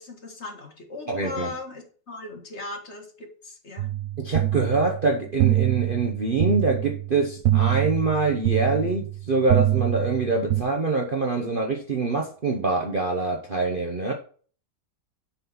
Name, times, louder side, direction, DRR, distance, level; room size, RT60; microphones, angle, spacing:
voice 1, 0.0-3.9, left 3 dB, 40° left, 1.7 m, -38 dB
voice 2, 1.1-1.5 4.2-14.1, right 3 dB, 40° right, 0.9 m, -25 dB
sound 1, 3.8-10.6, right 14 dB, 90° right, 0.7 m, -25 dB
7.9 x 4.3 x 5.4 m
omnidirectional pair, 2.0 m